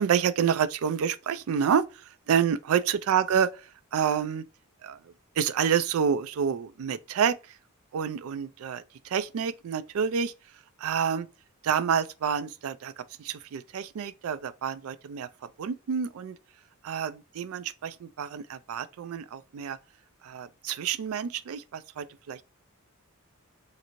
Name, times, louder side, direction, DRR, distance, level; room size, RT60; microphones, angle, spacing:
voice 1, 0.0-4.4 4.8-5.0 5.4-7.6 7.9-10.3 10.8-11.3 11.6-15.3 15.6-16.4 16.8-19.8 20.2-22.4, right 7 dB, 70° right, 0.3 m, -28 dB
2.9 x 2.6 x 2.5 m
head